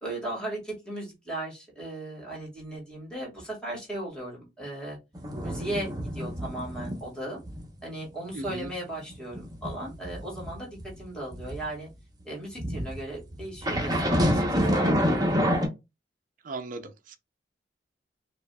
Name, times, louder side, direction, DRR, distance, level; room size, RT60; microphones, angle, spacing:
voice 1, 0.0-5.0 5.4-7.4 7.8-11.9 12.2-15.5, right 1 dB, 5° left, 1.8 m, -37 dB
sound 1, 5.2-7.1 7.4-7.7 8.0-11.6 12.6-15.7, equal, 20° right, 0.9 m, -28 dB
voice 2, 8.3-8.7 16.4-17.2, right 3 dB, 50° right, 0.5 m, -37 dB
4.9 x 2.4 x 2.2 m
head